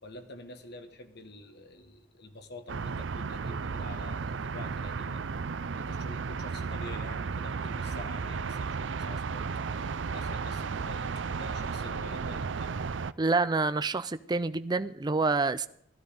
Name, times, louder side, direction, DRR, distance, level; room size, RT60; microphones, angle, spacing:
voice 1, 0.0-5.2 5.7-9.8 10.1-12.8, left 2 dB, 60° left, 1.8 m, -47 dB
sound 1, 2.7-13.1, right 5 dB, 75° right, 0.5 m, -34 dB
voice 2, 13.2-15.7, right 3 dB, 20° right, 0.5 m, -27 dB
16.5 x 12.5 x 5.1 m
head